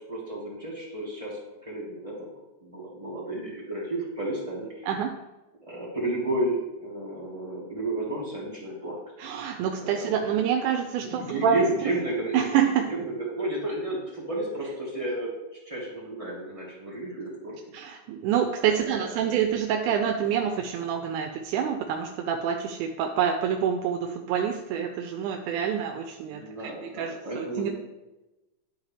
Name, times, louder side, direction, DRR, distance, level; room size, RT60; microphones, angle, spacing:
voice 1, 0.1-1.4 1.6-2.3 2.6-4.9 5.6-9.0 9.8-10.4 11.0-15.3 15.6-17.6 18.7-19.2 26.3-27.7, right 2 dB, 15° right, -6 dB, 1.1 m, -32 dB
voice 2, 9.2-11.6 11.8-11.9 12.3-12.9 17.7-27.7, right 8 dB, 85° right, 4 dB, 2.0 m, -27 dB
11.5 x 4.3 x 3.3 m, 1.0 s
omnidirectional pair, 3.5 m